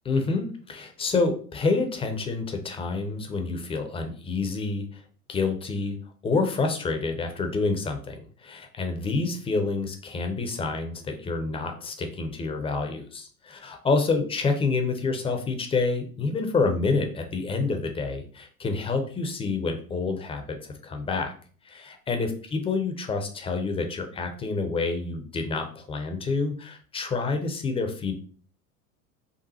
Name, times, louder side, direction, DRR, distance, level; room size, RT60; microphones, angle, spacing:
voice 1, 0.1-5.0 5.3-5.9 6.2-21.3 21.6-28.1, left 3 dB, 10° left, 5 dB, 0.6 m, -28 dB
5.4 x 2.4 x 4.1 m, 0.43 s
figure-of-eight pair, 85°, 46 cm